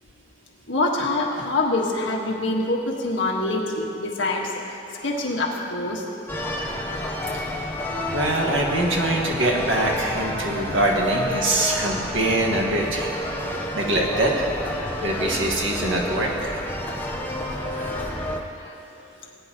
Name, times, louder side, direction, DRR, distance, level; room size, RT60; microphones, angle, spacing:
voice 1, 0.7-4.5 5.0-6.0 17.4-18.4 18.6-18.7, left 2 dB, 85° left, -1 dB, 1.5 m, -25 dB
sound 1, 6.3-18.4, left 1 dB, 10° left, 0.8 m, -30 dB
voice 2, 8.1-13.2 13.7-14.3 15.0-16.7, right 1 dB, 90° right, -1 dB, 1.8 m, -23 dB
19.0 x 9.5 x 3.0 m, 2.8 s
head